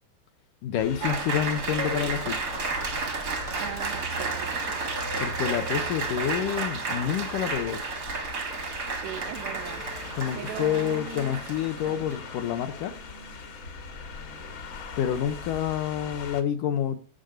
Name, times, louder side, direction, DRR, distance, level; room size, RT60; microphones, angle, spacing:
voice 1, 0.6-2.4 5.2-7.8 10.2-13.0 15.0-17.0, left 9 dB, 75° left, 2.0 m, -28 dB
sound 1, 0.8-16.4, left 3 dB, 45° left, 1.6 m, -41 dB
Applause, 1.0-12.3, right 4 dB, 70° right, 0.9 m, -32 dB
voice 2, 3.6-4.8 5.1-5.3 8.9-9.8 10.4-11.1, right 13 dB, 90° right, 2.9 m, -39 dB
13.0 x 8.0 x 6.7 m
omnidirectional pair, 4.8 m